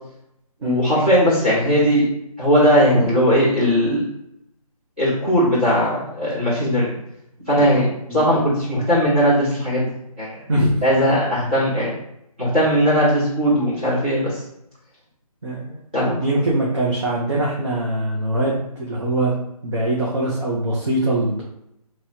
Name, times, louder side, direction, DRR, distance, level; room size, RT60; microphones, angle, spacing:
voice 1, 0.6-2.1 2.4-4.1 5.0-6.9 7.5-9.9 10.2-10.4 10.8-11.9 12.4-14.4 15.9-16.2, equal, 15° right, -13 dB, 1.5 m, -18 dB
voice 2, 15.4-19.3 19.6-21.4, right 1 dB, 50° right, -5 dB, 0.9 m, -22 dB
3.0 x 2.9 x 4.2 m, 0.78 s
hypercardioid pair, 175°, 20 cm